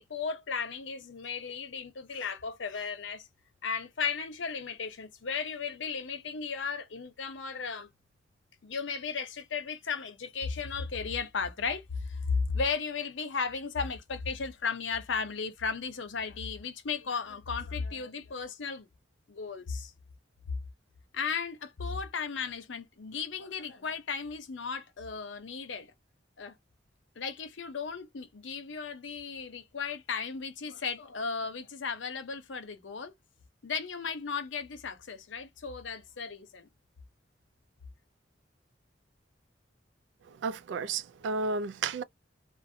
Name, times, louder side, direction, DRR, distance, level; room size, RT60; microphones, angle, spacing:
voice 1, 0.0-3.3 3.6-7.9 8.6-18.9 19.3-19.9 21.1-25.9 26.4-26.5 27.2-33.1 33.6-36.7, left 5 dB, 90° left, 0.7 m, -35 dB
voice 2, 40.4-42.0, right 4 dB, 70° right, 0.3 m, -32 dB
2.5 x 2.1 x 2.6 m
head